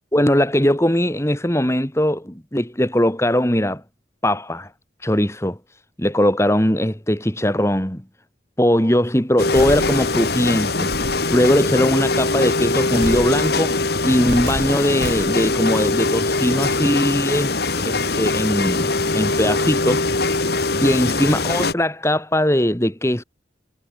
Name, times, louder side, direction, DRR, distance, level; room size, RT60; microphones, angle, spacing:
voice 1, 0.1-3.8 4.2-4.7 5.0-5.6 6.0-8.0 8.6-20.1 20.8-23.2, equal, 15° left, 2.5 m, -20 dB
sound 1, 9.4-21.7, left 3 dB, 55° left, 2.1 m, -22 dB
sound 2, 9.5-10.5 10.9-11.4 13.0-13.7 14.3-15.6, right 2 dB, 75° right, 1.6 m, -32 dB
head